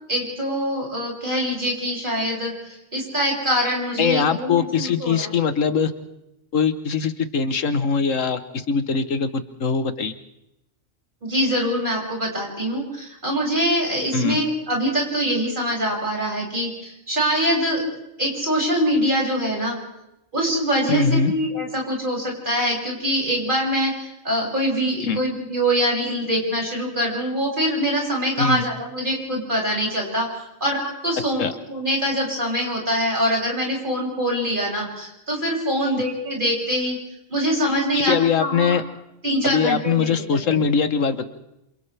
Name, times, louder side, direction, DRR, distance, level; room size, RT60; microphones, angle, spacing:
voice 1, 0.1-5.3 11.2-17.8 18.2-19.8 20.3-37.0 37.3-38.8 39.2-40.6, equal, 40° right, -3 dB, 7.3 m, -24 dB
voice 2, 4.0-5.9 6.5-10.1 14.1-14.4 20.9-21.3 25.0-25.2 28.4-28.6 31.4-31.5 37.9-38.8 39.4-41.2, left 6 dB, 80° left, 10 dB, 1.5 m, -22 dB
28.0 x 27.5 x 3.4 m, 0.87 s
omnidirectional pair, 1.3 m